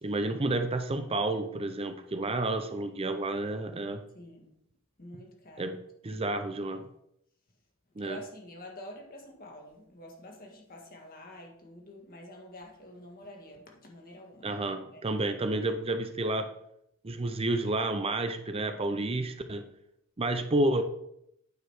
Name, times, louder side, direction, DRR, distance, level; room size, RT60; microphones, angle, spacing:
voice 1, 0.0-4.0 5.6-6.9 8.0-8.2 14.4-16.5 17.0-19.6 20.2-20.8, right 2 dB, 25° right, 8 dB, 0.5 m, -30 dB
voice 2, 4.1-4.5 5.0-5.8 8.0-14.5 14.9-15.2, left 1 dB, 45° left, 1 dB, 1.8 m, -48 dB
9.1 x 4.9 x 4.8 m, 0.75 s
head